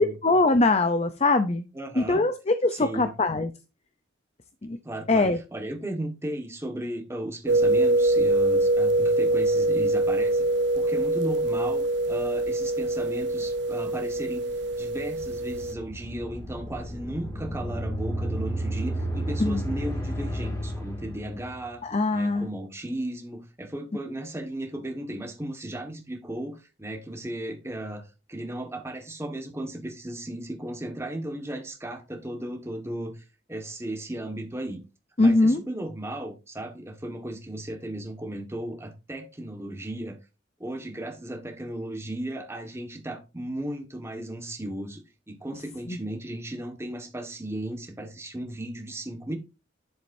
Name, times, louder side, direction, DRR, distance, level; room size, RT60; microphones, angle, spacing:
voice 1, 0.0-1.6 2.0-3.5 4.6-4.8 5.1-5.4 19.4-19.6 21.8-22.5 35.2-35.6 45.9-46.0, left 2 dB, 35° left, 0.6 m, -22 dB
voice 2, 1.7-2.2 2.7-3.1 4.8-10.5 10.7-14.4 14.8-21.8 22.1-34.8 35.2-40.2 40.6-45.0 45.3-49.4, right 1 dB, 15° right, 1.6 m, -35 dB
sound 1, 7.5-15.7, right 2 dB, 60° right, 0.4 m, -24 dB
sound 2, 14.7-21.7, right 1 dB, 15° left, 2.3 m, -32 dB
10.5 x 7.3 x 2.7 m
head